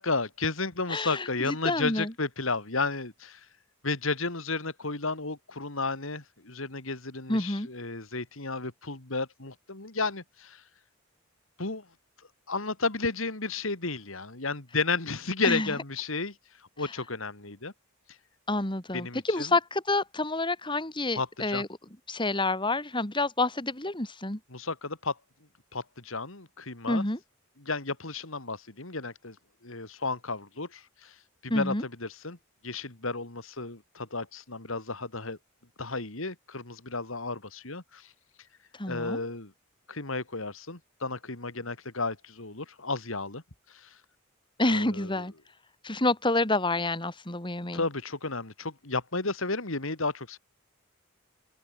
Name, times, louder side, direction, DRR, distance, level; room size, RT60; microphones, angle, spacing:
voice 1, 0.0-3.4 3.8-10.6 11.6-11.8 12.5-16.3 16.8-17.7 18.9-19.5 21.1-21.6 24.5-25.1 25.7-27.0 27.6-29.4 29.6-31.1 31.4-32.4 32.6-35.4 35.8-38.1 38.9-39.5 39.9-43.4 43.7-43.9 44.6-45.2 47.7-50.4, left 3 dB, 70° left, 2.9 m, -33 dB
voice 2, 0.9-2.1 7.3-7.7 15.4-15.7 18.5-21.7 22.1-24.4 26.9-27.2 31.5-31.8 38.8-39.2 44.6-45.3 45.8-47.8, left 2 dB, 25° left, 3.1 m, -28 dB
open air
head